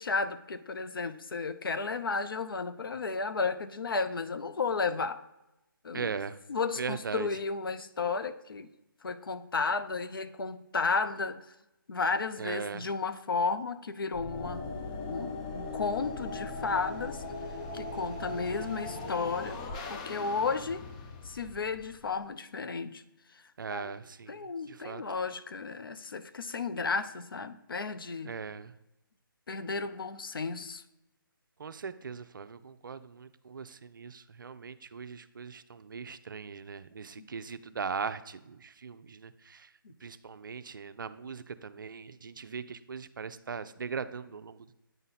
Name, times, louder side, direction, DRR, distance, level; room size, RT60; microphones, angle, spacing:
voice 1, 0.0-5.2 5.8-6.2 6.5-8.7 9.0-11.5 11.9-14.7 15.1-17.2 17.7-19.6 19.9-20.8 21.2-23.0 23.7-23.9 24.3-28.3 29.5-30.8 37.2-37.3, left 4 dB, 70° left, 11 dB, 0.6 m, -33 dB
voice 2, 5.9-6.4 6.8-7.3 12.4-12.9 23.6-25.0 28.2-28.7 31.6-39.7 40.0-44.7, right 5 dB, 65° right, 12 dB, 0.4 m, -39 dB
sound 1, 14.1-22.2, left 3 dB, 15° left, 0.4 m, -39 dB
9.0 x 4.0 x 4.0 m, 0.92 s
figure-of-eight pair, 155°, 12 cm